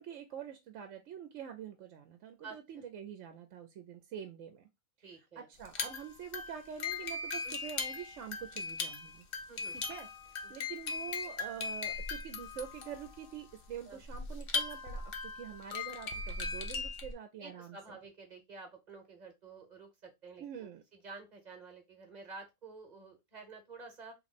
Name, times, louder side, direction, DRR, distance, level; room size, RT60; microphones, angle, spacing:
voice 1, 0.0-4.7 5.0-9.3 9.7-18.0 20.4-20.8, right 8 dB, 75° right, 0.9 m, -46 dB
voice 2, 2.4-2.8 5.0-5.5 7.4-7.6 9.5-9.8 13.9-14.0 17.4-20.7 21.0-24.1, right 4 dB, 35° right, 1.1 m, -50 dB
sound 1, 5.6-17.1, left 4 dB, 55° left, 0.8 m, -39 dB
3.1 x 3.0 x 4.1 m
omnidirectional pair, 1.3 m